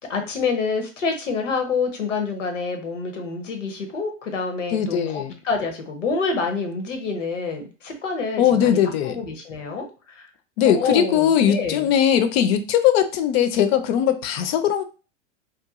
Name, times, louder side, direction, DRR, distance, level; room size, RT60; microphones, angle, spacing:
voice 1, 0.1-8.8 9.0-10.3 10.7-11.8, left 4 dB, 90° left, 5 dB, 0.8 m, -27 dB
voice 2, 4.7-5.4 8.4-9.2 10.6-14.8, left 9 dB, 55° left, 9 dB, 0.5 m, -20 dB
3.0 x 2.2 x 2.4 m, 0.34 s
hypercardioid pair, 100°, 36 cm